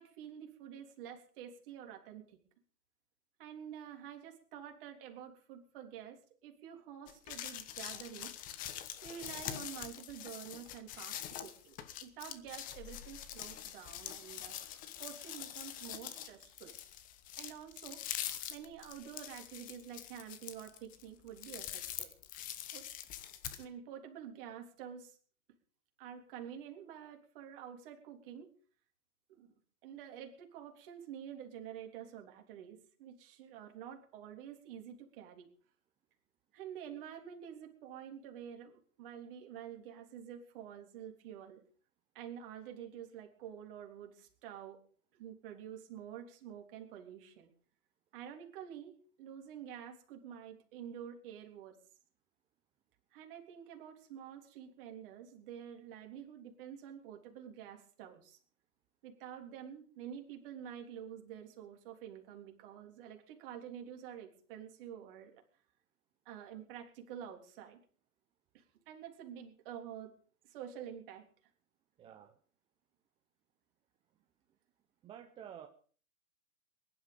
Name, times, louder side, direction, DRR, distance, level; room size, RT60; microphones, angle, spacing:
voice 1, 0.0-2.4 3.4-8.4 9.0-11.8 12.0-14.6 15.0-16.7 17.4-18.0 18.5-22.1 22.7-22.9 23.6-25.2 26.0-28.5 29.3-29.5 29.8-35.5 36.5-41.6 42.1-44.8 45.1-47.5 48.1-51.8 53.1-58.4 59.0-65.4 66.3-67.8 68.5-70.1 70.4-71.3, right 9 dB, 40° right, 3 dB, 3.6 m, -48 dB
sound 1, 7.1-23.6, left 11 dB, 20° left, 1.0 m, -44 dB
voice 2, 72.0-72.4 74.1-74.6 75.0-75.7, right 9 dB, 10° right, 5 dB, 0.7 m, -52 dB
21.0 x 11.5 x 5.3 m, 0.44 s
hypercardioid pair, 135°, 43 cm